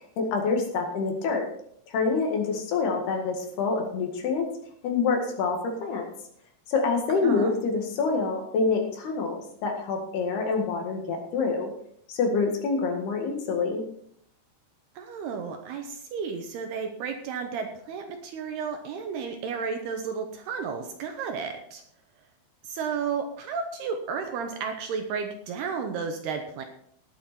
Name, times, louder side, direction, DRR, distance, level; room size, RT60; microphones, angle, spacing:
voice 1, 0.2-1.4 1.9-4.4 4.8-6.1 6.7-11.7 12.1-13.8, left 4 dB, 65° left, 3 dB, 3.6 m, -26 dB
voice 2, 15.0-21.8 22.6-26.7, right 6 dB, 70° right, 5 dB, 2.7 m, -32 dB
18.5 x 7.8 x 4.3 m, 0.65 s
omnidirectional pair, 5.4 m